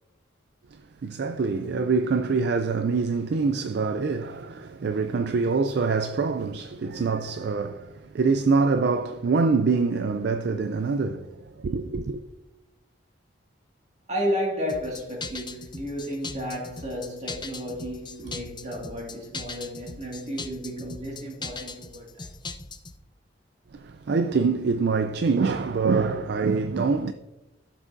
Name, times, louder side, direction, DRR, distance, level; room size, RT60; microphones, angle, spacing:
voice 1, 0.7-12.2 23.7-27.1, right 4 dB, 55° right, 0.4 m, -25 dB
voice 2, 14.1-22.3, equal, 35° right, 1.9 m, -32 dB
sound 1, 14.7-23.0, left 3 dB, 25° left, 0.6 m, -39 dB
12.0 x 7.4 x 2.6 m
head